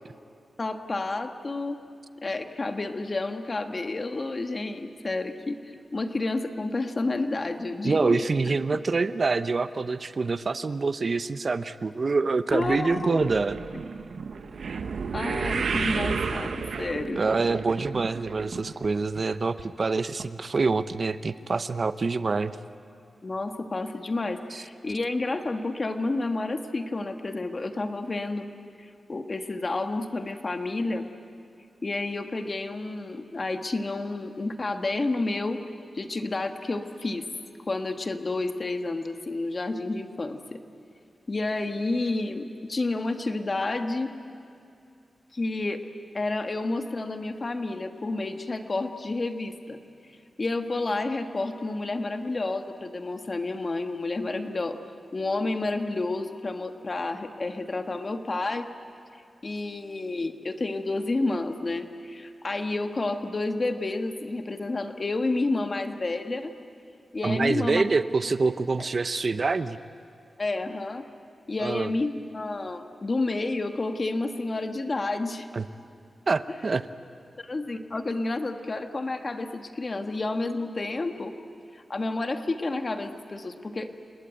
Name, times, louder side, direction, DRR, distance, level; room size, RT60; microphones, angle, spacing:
voice 1, 0.6-1.8 2.2-8.5 12.5-13.3 14.7-14.8 15.1-17.2 23.2-28.5 28.8-31.1 31.8-35.6 35.9-37.3 37.7-40.6 41.3-44.1 45.3-45.8 46.1-49.8 50.4-54.8 55.1-58.7 59.4-66.5 67.1-67.8 70.4-71.0 71.5-75.5 77.4-81.3 81.7-84.0, left 2 dB, 40° left, 6 dB, 1.6 m, -30 dB
voice 2, 7.8-13.6 17.1-22.6 24.5-24.6 67.2-69.8 71.6-71.9 75.5-75.7 76.3-76.9, right 4 dB, 50° right, 12 dB, 0.7 m, -26 dB
sound 1, 12.5-18.9 19.2-19.6 20.2-20.3 20.6-20.7, right 5 dB, 80° right, 1.1 m, -32 dB
29.5 x 19.5 x 9.1 m, 2.5 s
wide cardioid pair, 85°, 0 cm